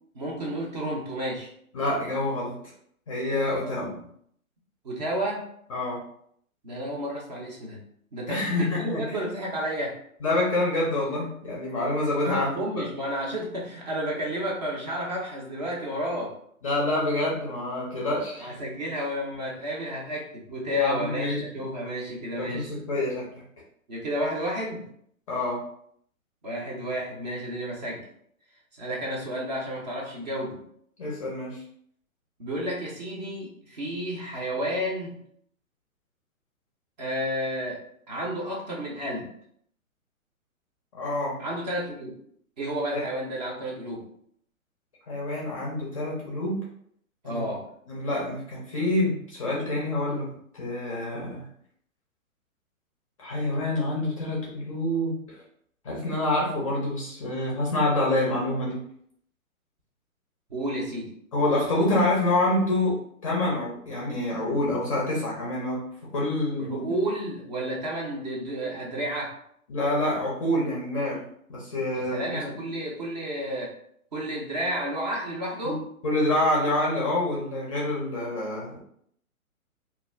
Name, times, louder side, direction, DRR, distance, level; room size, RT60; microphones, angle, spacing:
voice 1, 0.1-1.5 3.5-4.1 4.8-5.4 6.6-7.8 8.1-10.0 12.2-16.4 18.4-22.8 23.9-24.9 26.4-28.0 28.7-30.6 32.4-35.2 37.0-37.8 38.1-39.3 41.4-42.1 42.6-44.0 47.2-47.7 60.5-61.1 66.6-69.3 71.9-73.7 74.1-75.8, equal, 30° right, -2 dB, 0.5 m, -31 dB
voice 2, 1.7-2.6 3.1-3.9 5.7-6.0 8.3-9.2 10.2-12.8 16.6-18.6 20.7-21.4 22.4-23.3 25.3-25.6 31.0-31.6 40.9-41.4 42.9-43.0 45.1-46.7 47.2-47.4 47.9-50.3 50.6-51.4 53.2-55.4 55.8-58.8 61.3-65.8 66.1-66.9 69.7-71.2 71.5-72.4 75.6-78.8, left 1 dB, 25° left, -3 dB, 0.5 m, -27 dB
2.3 x 2.3 x 3.1 m, 0.67 s
hypercardioid pair, 140°, 42 cm